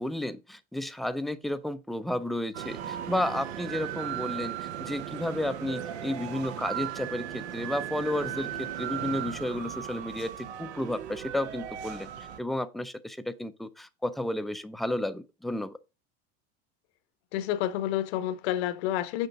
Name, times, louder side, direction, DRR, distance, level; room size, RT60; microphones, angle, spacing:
voice 1, 0.0-4.5 4.8-10.3 10.6-12.1 12.4-15.8, left 1 dB, ahead, 0.4 m, -32 dB
sound 1, 2.5-12.4, right 11 dB, 90° right, 0.9 m, -37 dB
voice 2, 17.3-19.3, left 12 dB, 75° left, 1.0 m, -29 dB
6.8 x 5.0 x 4.7 m
supercardioid pair, 120°, 32 cm